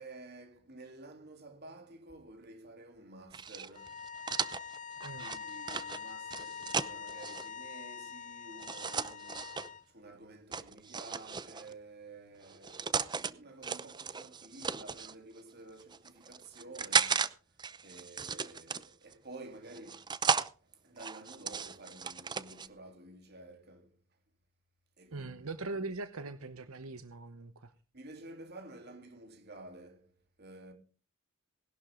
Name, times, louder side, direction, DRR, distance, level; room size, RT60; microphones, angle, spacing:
voice 1, 0.0-4.1 5.1-17.3 17.8-20.1 20.6-24.0 25.0-25.5 27.9-30.7, right 2 dB, 50° right, 3.6 m, -51 dB
sound 1, 3.3-7.5 8.6-9.7 10.5-11.7 12.4-13.3 13.6-15.1 15.8-17.3 17.6-19.1 19.7-20.5 21.0-22.7, right 5 dB, 20° right, 0.7 m, -35 dB
sound 2, 3.7-9.8, left 6 dB, 35° left, 1.0 m, -44 dB
voice 2, 25.1-27.7, right 3 dB, 85° right, 1.0 m, -41 dB
19.5 x 12.0 x 3.8 m
head